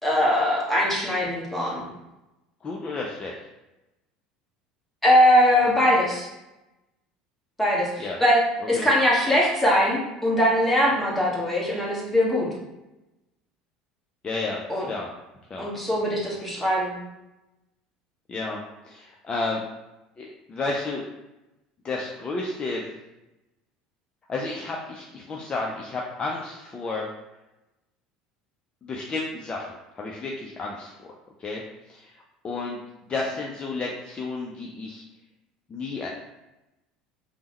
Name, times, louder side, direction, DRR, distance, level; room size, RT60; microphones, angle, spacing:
voice 1, 0.0-1.8 5.0-6.3 7.6-8.4 8.7-12.5 14.7-14.9 15.6-17.0, equal, 5° left, -6 dB, 1.2 m, -21 dB
voice 2, 2.6-3.3 8.0-8.2 8.6-8.9 14.2-15.1 15.5-15.7 18.3-19.6 20.2-21.0 21.8-22.8 24.3-27.1 28.8-31.1 31.4-31.6 31.9-32.8 33.1-35.0 35.7-36.1, left 3 dB, 30° left, -2 dB, 0.4 m, -32 dB
3.3 x 2.1 x 3.0 m, 0.96 s
hypercardioid pair, 70°, 3 cm